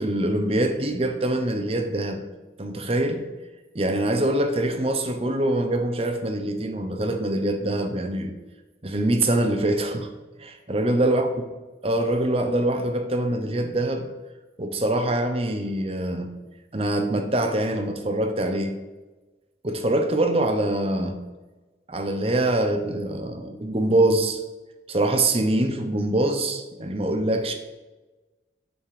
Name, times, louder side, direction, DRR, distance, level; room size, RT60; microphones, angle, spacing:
voice 1, 0.0-2.2 2.6-3.2 3.7-8.3 8.8-10.1 10.4-11.3 11.8-14.1 14.6-16.3 16.7-18.8 19.6-21.2 21.9-24.4 24.9-27.5, right 1 dB, 35° right, 7 dB, 0.8 m, -24 dB
8.9 x 4.3 x 4.9 m, 1.2 s
head